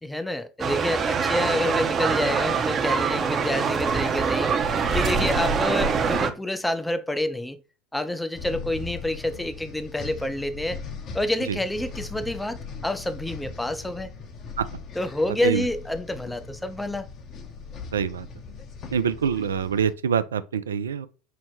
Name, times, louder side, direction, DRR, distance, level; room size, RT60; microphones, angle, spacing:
voice 1, 0.0-4.7 4.9-7.6 7.9-10.8 11.1-14.1 14.9-17.1, left 1 dB, 5° left, 0.4 m, -28 dB
sound 1, 0.6-6.3, right 5 dB, 35° right, 0.6 m, -24 dB
sound 2, 8.4-19.9, left 5 dB, 45° left, 0.8 m, -39 dB
voice 2, 17.9-18.3 18.9-21.1, right 7 dB, 85° right, 0.3 m, -25 dB
5.6 x 2.1 x 3.0 m
hypercardioid pair, 80°, 0 cm